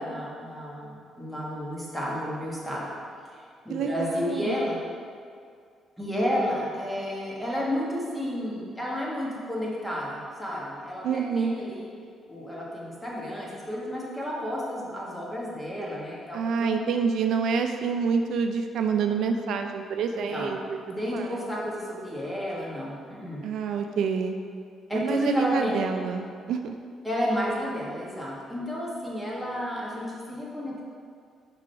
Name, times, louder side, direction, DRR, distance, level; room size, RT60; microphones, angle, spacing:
voice 1, 0.0-2.9 3.6-4.8 6.0-11.9 12.3-16.8 20.1-20.6 20.9-23.4 24.9-25.8 27.0-30.9, equal, 10° left, -5 dB, 1.5 m, -31 dB
voice 2, 3.7-4.6 11.0-11.5 16.3-21.4 23.4-24.4 24.9-26.8, right 6 dB, 75° right, 5 dB, 0.3 m, -27 dB
4.9 x 3.8 x 5.6 m, 2.2 s
cardioid pair, 90°, 0 cm